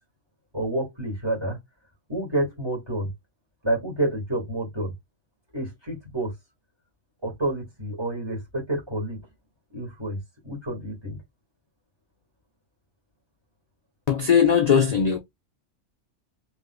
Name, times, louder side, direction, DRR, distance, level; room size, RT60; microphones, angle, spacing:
voice 1, 0.5-1.6 2.1-3.1 3.6-4.9 5.5-6.3 7.2-9.2 9.7-11.2, right 1 dB, 20° right, 2.0 m, -29 dB
voice 2, 14.1-15.2, left 7 dB, 50° left, 0.5 m, -19 dB
3.4 x 3.1 x 2.2 m
omnidirectional pair, 1.3 m